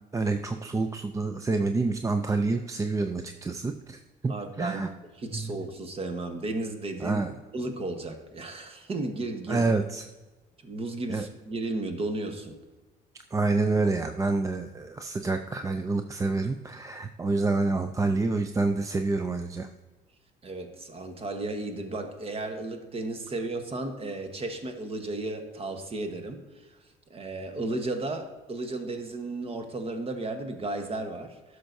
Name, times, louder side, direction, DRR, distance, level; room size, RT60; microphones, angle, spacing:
voice 1, 0.1-4.9 5.3-5.5 7.0-7.3 9.5-10.0 11.1-11.3 13.3-19.7, right 3 dB, 20° right, 7 dB, 0.4 m, -28 dB
voice 2, 4.3-4.8 5.2-7.2 7.5-9.7 10.6-12.6 20.4-26.8 27.1-31.6, right 2 dB, 35° right, 6 dB, 1.2 m, -34 dB
11.5 x 6.4 x 2.7 m, 1.2 s
cardioid pair, 110°, 17 cm